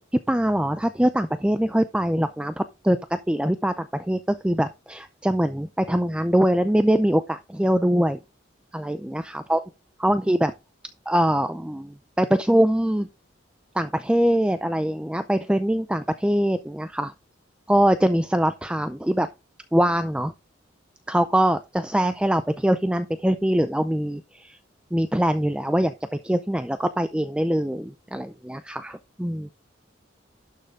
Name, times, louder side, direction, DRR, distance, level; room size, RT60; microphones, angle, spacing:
voice 1, 0.1-8.2 8.7-9.6 10.0-10.5 11.1-13.1 13.7-17.1 17.7-19.3 19.7-20.3 21.1-24.6 24.9-29.5, right 1 dB, 5° right, 0.4 m, -23 dB
11.5 x 6.6 x 3.7 m
head